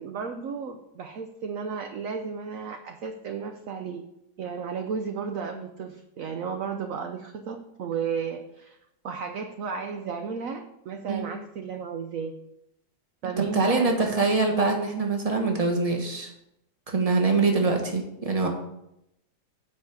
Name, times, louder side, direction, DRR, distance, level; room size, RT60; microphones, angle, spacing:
voice 1, 0.0-4.0 4.4-8.8 9.0-12.3 13.2-14.3, right 6 dB, 60° right, 6 dB, 1.0 m, -33 dB
voice 2, 13.5-16.3 16.9-18.5, right 3 dB, 20° right, 2 dB, 1.5 m, -24 dB
9.0 x 5.4 x 6.9 m, 0.83 s
omnidirectional pair, 1.8 m